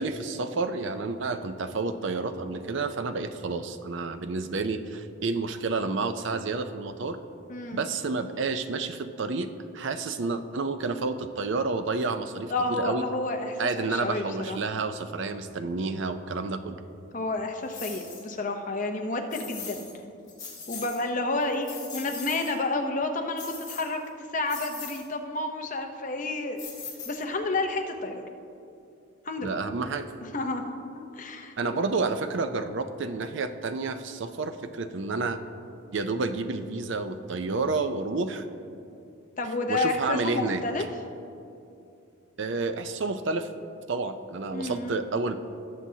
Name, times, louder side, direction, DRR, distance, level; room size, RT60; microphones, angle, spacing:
voice 1, 0.0-7.2 7.7-9.5 9.7-13.0 13.6-16.8 29.4-30.1 31.6-35.4 35.9-38.4 39.7-40.6 42.4-43.5 43.9-45.4, right 3 dB, 60° right, 9 dB, 0.5 m, -30 dB
voice 2, 7.5-7.8 12.5-14.6 17.1-19.9 20.7-24.0 24.3-26.6 27.1-28.2 29.2-29.5 30.3-30.6 30.9-31.5 39.4-40.8 44.5-45.0, left 2 dB, 35° left, 4 dB, 0.7 m, -30 dB
sound 1, 17.7-18.2 19.3-19.9 20.3-21.0 21.4-22.6 23.4-24.1 24.5-25.0 26.6-27.4, left 6 dB, 20° left, 2.5 m, -40 dB
17.5 x 7.4 x 2.8 m, 2.6 s
head